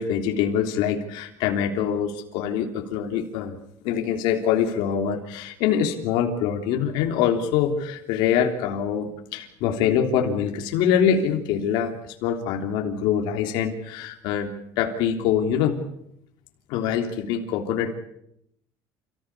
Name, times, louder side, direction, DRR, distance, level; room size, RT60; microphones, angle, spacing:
voice 1, 0.0-3.5 3.8-15.8 16.7-17.9, left 8 dB, 75° left, 3 dB, 3.3 m, -24 dB
29.0 x 15.0 x 8.5 m, 0.76 s
cardioid pair, 135°, 8 cm